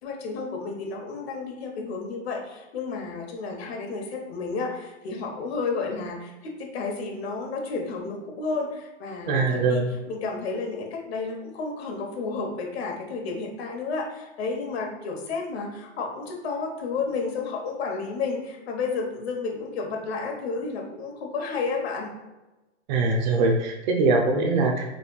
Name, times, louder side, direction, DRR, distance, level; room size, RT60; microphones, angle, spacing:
voice 1, 0.0-9.8 10.1-22.1, left 4 dB, 60° left, 1 dB, 1.2 m, -31 dB
voice 2, 9.2-9.9 22.9-25.0, right 3 dB, 40° right, 2 dB, 0.7 m, -22 dB
5.2 x 3.4 x 2.4 m, 1.1 s
supercardioid pair, 160°, 35 cm